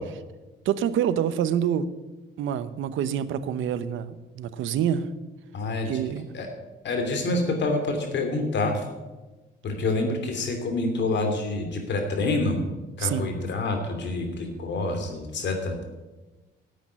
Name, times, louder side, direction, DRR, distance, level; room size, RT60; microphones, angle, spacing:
voice 1, 0.6-1.9 2.4-5.1 5.9-6.3 13.0-13.3, right 9 dB, 80° right, 13 dB, 0.9 m, -26 dB
voice 2, 5.5-6.0 6.3-6.5 6.8-8.8 9.6-12.6 13.0-15.8, left 2 dB, 65° left, 5 dB, 3.0 m, -27 dB
10.0 x 8.4 x 8.9 m, 1.2 s
cardioid pair, 90°, 20 cm